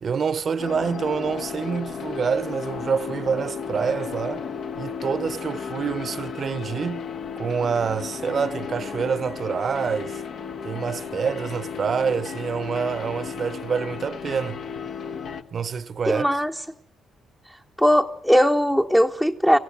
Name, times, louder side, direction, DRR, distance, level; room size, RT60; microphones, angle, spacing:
voice 1, 0.0-4.5 4.8-7.1 7.4-10.2 10.6-14.6 15.5-16.3, right 6 dB, 45° right, 1.0 m, -27 dB
sound 1, 0.6-15.4, left 6 dB, 65° left, 1.5 m, -34 dB
voice 2, 16.1-16.5 17.8-19.6, equal, 5° left, 0.9 m, -19 dB
24.5 x 15.5 x 9.2 m
cardioid pair, 90°, 0 cm